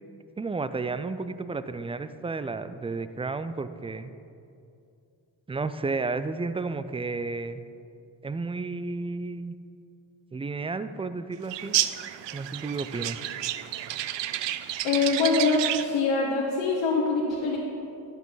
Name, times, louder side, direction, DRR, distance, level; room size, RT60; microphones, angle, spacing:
voice 1, 0.4-4.1 5.5-7.6 8.2-9.5 10.3-11.7 12.3-13.2, right 3 dB, 15° right, 12 dB, 0.3 m, -32 dB
sound 1, 11.5-16.0, right 13 dB, 75° right, 0.5 m, -30 dB
voice 2, 14.8-17.6, left 4 dB, 80° left, -3 dB, 1.3 m, -24 dB
12.0 x 8.2 x 4.0 m, 2.6 s
cardioid pair, 75°, 44 cm